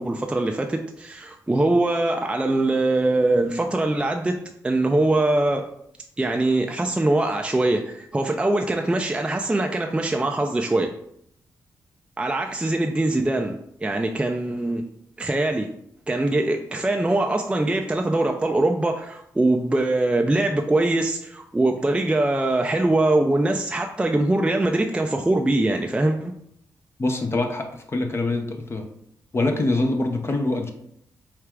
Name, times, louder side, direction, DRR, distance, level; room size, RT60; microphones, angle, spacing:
voice 1, 0.0-5.7 6.2-10.9 12.2-14.8 15.2-15.7 16.1-26.3, right 2 dB, 15° right, 2 dB, 0.4 m, -22 dB
voice 2, 27.0-28.8 29.3-30.7, left 2 dB, 35° left, 4 dB, 0.6 m, -24 dB
4.5 x 2.4 x 3.5 m, 0.71 s
cardioid pair, 60°, 7 cm